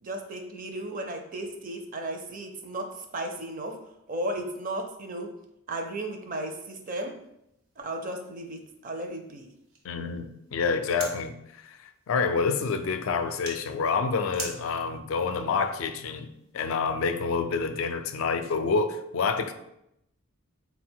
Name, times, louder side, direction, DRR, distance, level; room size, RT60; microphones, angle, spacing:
voice 1, 0.0-3.8 4.1-5.3 5.7-7.1 7.8-9.5, right 1 dB, 40° right, 4 dB, 0.5 m, -35 dB
sound 1, 7.2-16.5, right 3 dB, 80° right, 1.0 m, -47 dB
voice 2, 9.8-16.3 16.5-19.5, left 5 dB, 65° left, 8 dB, 0.4 m, -28 dB
4.1 x 2.2 x 4.3 m, 0.81 s
head